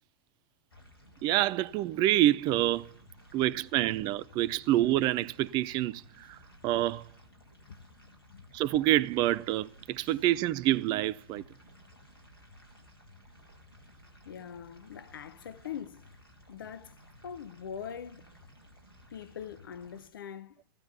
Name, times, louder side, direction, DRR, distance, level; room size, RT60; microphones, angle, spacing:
sound 1, 0.7-20.1, left 1 dB, 80° left, 4.5 m, -56 dB
voice 1, 1.2-2.9 3.3-6.4 6.6-7.1 8.5-11.4, right 14 dB, 35° right, 0.7 m, -27 dB
voice 2, 7.6-8.4 10.0-10.1 14.2-16.2 16.5-18.3 19.1-20.6, left 8 dB, 65° left, 1.1 m, -43 dB
15.5 x 12.5 x 5.5 m
figure-of-eight pair, 95°, 12 cm